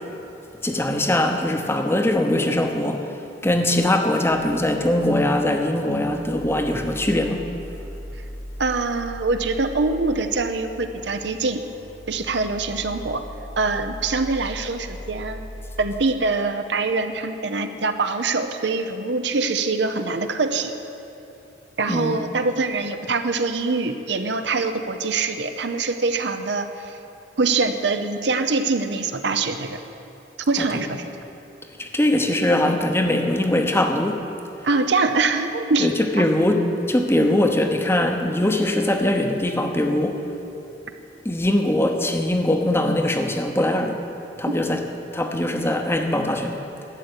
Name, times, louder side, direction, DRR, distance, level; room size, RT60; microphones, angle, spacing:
voice 1, 0.6-3.1 3.4-7.4 21.9-22.3 30.6-30.8 31.8-34.2 35.8-36.6 36.9-40.2 41.2-44.0 44.4-44.8 45.1-46.6, left 1 dB, 15° left, 4 dB, 0.9 m, -21 dB
sound 1, 4.3-16.0, equal, 65° left, 1.0 m, -39 dB
voice 2, 8.6-11.6 12.1-13.2 13.6-15.5 15.8-20.7 21.8-27.0 27.4-29.8 30.5-31.1 34.6-35.9 36.2-36.3 37.2-37.4 44.5-44.8, right 3 dB, 65° right, 8 dB, 0.8 m, -24 dB
12.5 x 7.9 x 9.8 m, 2.8 s
head